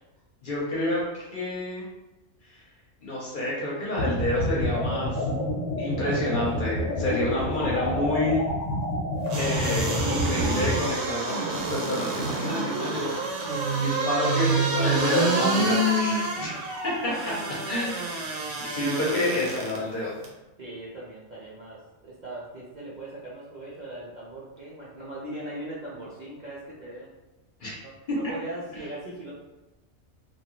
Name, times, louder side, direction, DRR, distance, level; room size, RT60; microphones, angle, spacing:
voice 1, 0.4-1.9 3.0-5.2 5.8-8.4 9.4-13.2 13.8-16.5 16.8-17.3 17.6-18.2 18.6-20.1 27.6-27.8 28.1-28.2, left 1 dB, 45° left, -5 dB, 0.8 m, -28 dB
sound 1, 4.0-10.8, left 1 dB, 90° left, 1.0 m, -28 dB
sound 2, 9.3-19.8 20.2-20.3, right 2 dB, 75° right, 1.0 m, -28 dB
voice 2, 20.6-27.1 27.8-29.3, right 1 dB, 50° right, -7 dB, 0.6 m, -40 dB
2.9 x 2.3 x 2.9 m, 1.1 s
omnidirectional pair, 1.3 m